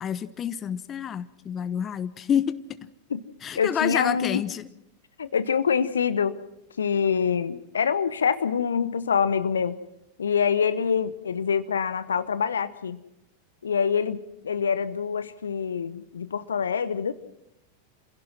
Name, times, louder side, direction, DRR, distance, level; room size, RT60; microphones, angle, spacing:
voice 1, 0.0-2.6 3.4-4.7, left 8 dB, 25° left, 15 dB, 0.7 m, -28 dB
voice 2, 3.6-4.4 5.2-6.4 6.8-9.8 10.2-13.0 13.6-17.1, left 6 dB, 70° left, 16 dB, 0.9 m, -25 dB
28.0 x 16.5 x 6.1 m, 0.80 s
figure-of-eight pair, 90°, 0 cm